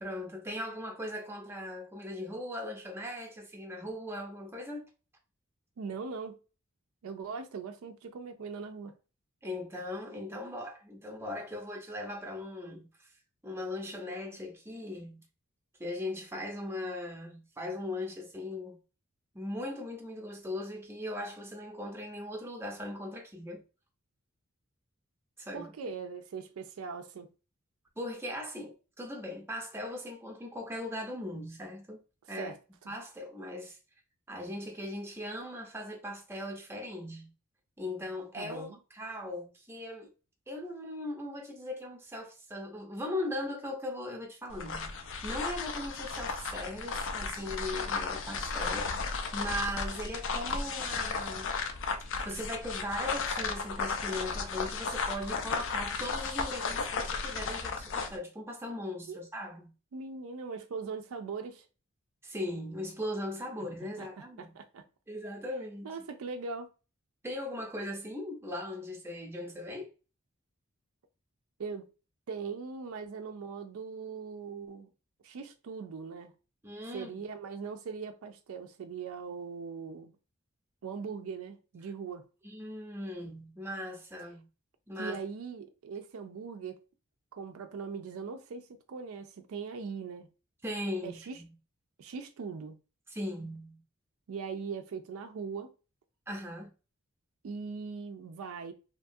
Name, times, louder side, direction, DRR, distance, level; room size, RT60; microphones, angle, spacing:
voice 1, 0.0-4.9 9.4-13.1 13.4-15.2 15.8-18.8 19.3-23.6 25.4-25.7 28.0-32.0 32.3-32.5 32.9-33.8 34.3-37.3 37.8-38.7 38.9-40.1 40.5-48.9 49.3-51.5 52.2-59.7 62.2-64.5 65.1-65.9 67.2-69.9 76.6-77.1 82.4-84.4 84.9-85.2 90.6-91.5 93.1-93.8 96.3-96.7, left 1 dB, 10° right, 0.6 m, -39 dB
voice 2, 5.8-6.4 7.0-8.9 25.5-27.3 32.4-32.6 32.8-32.9 38.3-38.8 59.1-59.2 59.9-61.7 64.0-64.1 64.4-64.8 65.8-66.7 71.6-71.9 72.3-74.9 75.2-76.3 76.9-80.1 80.8-82.2 85.0-86.8 87.3-90.3 91.0-91.4 92.0-92.8 94.3-95.7 97.4-98.7, right 5 dB, 75° right, 0.4 m, -40 dB
sound 1, 44.5-58.2, left 4 dB, 65° left, 0.5 m, -34 dB
2.8 x 2.3 x 2.6 m
head